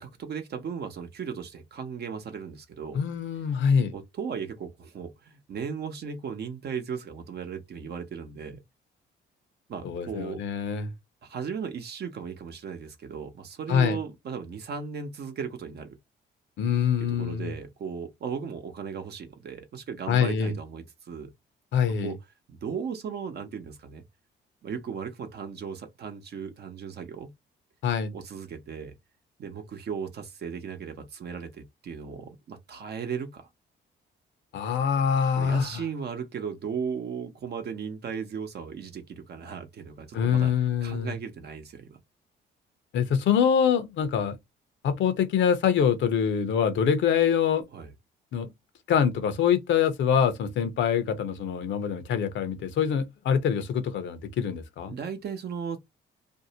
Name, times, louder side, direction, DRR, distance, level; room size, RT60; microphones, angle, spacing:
voice 1, 0.0-3.0 3.9-8.6 9.7-10.4 11.2-16.0 17.0-21.3 22.0-22.2 22.5-24.0 24.6-27.3 28.1-28.9 29.4-33.5 35.4-40.5 40.8-42.0 47.7-47.9 54.9-55.8, right 6 dB, 55° right, 0.8 m, -36 dB
voice 2, 2.9-3.9 9.8-10.9 13.7-14.0 16.6-17.5 20.1-20.5 21.7-22.1 27.8-28.1 34.5-35.8 40.1-41.1 42.9-44.3 44.8-47.6 48.3-48.5 48.9-54.9, left 7 dB, 70° left, 0.7 m, -25 dB
2.6 x 2.0 x 2.7 m
cardioid pair, 90°, 20 cm